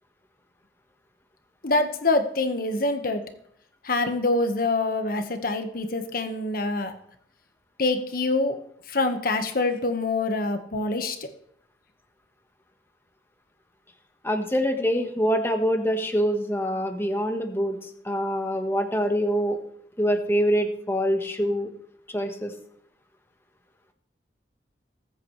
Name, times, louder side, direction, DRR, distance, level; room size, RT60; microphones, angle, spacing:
voice 1, 1.6-3.2 3.8-6.9 7.8-8.6 8.9-11.2, left 2 dB, 55° left, 7 dB, 1.4 m, -25 dB
voice 2, 14.2-17.8 18.0-19.6 20.0-21.7 22.1-22.5, equal, 15° left, 4 dB, 1.4 m, -25 dB
20.5 x 8.4 x 3.3 m, 0.69 s
head